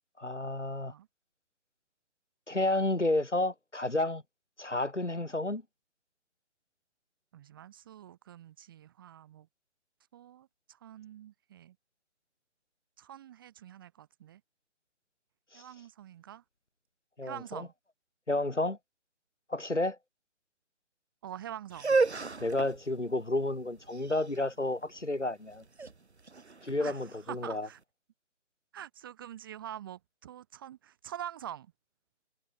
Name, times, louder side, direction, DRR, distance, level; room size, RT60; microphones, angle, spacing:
voice 1, 0.2-0.9 2.5-4.2 4.6-5.6 15.5-15.6 17.2-17.7 18.3-18.8 19.5-20.0 22.4-25.6 26.6-27.7, left 2 dB, 85° left, 3.4 m, -31 dB
voice 2, 7.3-9.5 10.1-10.5 10.8-11.7 13.0-14.4 15.5-16.4 17.2-17.7 21.2-21.9 26.8-27.0 27.3-27.8 28.7-31.7, right 11 dB, 20° right, 1.3 m, -45 dB
sound 1, 21.7-27.6, right 4 dB, 70° right, 2.0 m, -33 dB
figure-of-eight pair, 145°, 35 cm